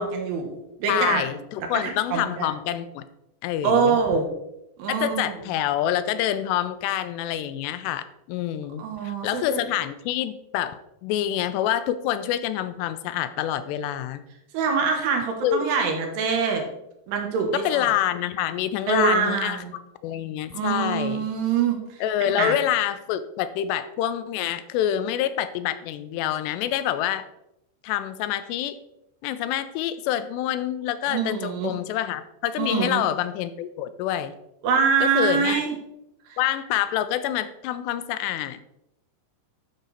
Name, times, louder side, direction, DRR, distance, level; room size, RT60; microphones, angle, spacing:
voice 1, 0.0-1.2 1.6-2.5 3.6-4.3 4.8-5.3 8.8-9.6 14.5-16.6 17.1-17.8 18.9-19.7 20.5-21.8 22.3-22.5 31.1-31.7 32.6-33.0 34.6-35.7 36.3-36.4, right 5 dB, 75° right, 3 dB, 3.3 m, -24 dB
voice 2, 0.9-3.0 3.4-4.0 4.9-14.3 15.4-15.6 17.5-19.6 20.0-21.3 22.0-27.3 27.8-28.8 29.2-34.3 35.0-35.6 36.4-38.6, left 11 dB, 85° left, 12 dB, 2.7 m, -27 dB
12.0 x 5.2 x 4.1 m, 0.85 s
omnidirectional pair, 4.9 m